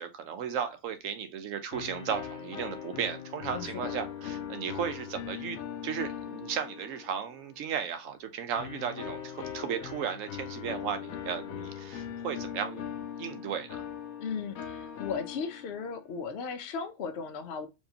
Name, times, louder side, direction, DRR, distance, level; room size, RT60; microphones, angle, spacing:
voice 1, 0.0-12.9 13.2-13.8, right 8 dB, 75° right, 1.0 m, -35 dB
sound 1, 1.7-7.5 8.6-16.0, left 9 dB, 85° left, 1.1 m, -40 dB
voice 2, 3.5-3.8 14.2-17.7, left 5 dB, 60° left, 0.8 m, -36 dB
4.5 x 2.9 x 2.8 m
omnidirectional pair, 1.4 m